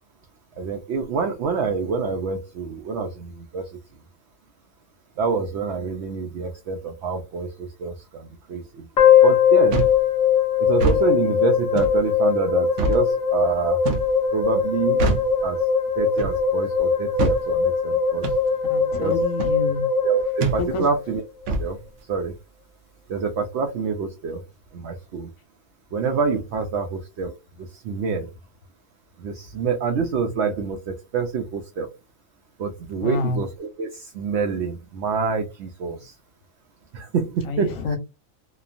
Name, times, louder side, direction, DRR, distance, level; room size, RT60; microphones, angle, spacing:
voice 1, 0.6-3.7 5.2-8.9 9.2-9.8 10.6-13.8 14.3-15.0 15.4-15.6 16.0-18.3 19.0-19.2 20.0-21.2 21.6-21.8 22.1-22.3 23.1-24.4 24.7-25.3 25.9-28.3 29.2-31.9 32.6-36.2 36.9-38.0, right 5 dB, 65° right, 5 dB, 0.8 m, -26 dB
sound 1, 9.0-21.2, left 7 dB, 40° left, 0.9 m, -21 dB
sound 2, 9.7-10.0 10.7-11.0 11.8-12.0 12.8-13.0 13.8-14.1 15.0-15.3 16.2-16.4 17.2-17.4 18.2-18.4 19.4-19.6 20.4-20.6 21.5-21.7, right 3 dB, 85° right, 1.0 m, -24 dB
voice 2, 18.7-19.9 20.6-20.8 33.0-33.4 35.8-36.0 37.4-38.0, left 3 dB, 85° left, 5 dB, 1.2 m, -27 dB
2.9 x 2.2 x 2.4 m, 0.25 s
omnidirectional pair, 1.4 m